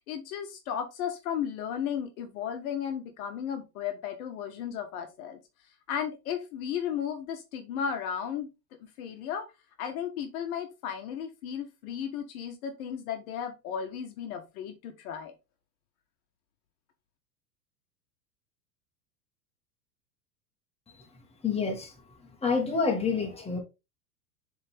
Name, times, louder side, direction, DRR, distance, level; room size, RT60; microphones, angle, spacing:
voice 1, 0.0-5.4 5.9-8.5 9.0-9.4 9.8-15.3, left 8 dB, 60° left, 1.3 m, -34 dB
voice 2, 21.4-21.9 22.4-23.6, left 4 dB, 10° left, 1.8 m, -27 dB
7.6 x 3.7 x 3.4 m
hypercardioid pair, 90°, 49 cm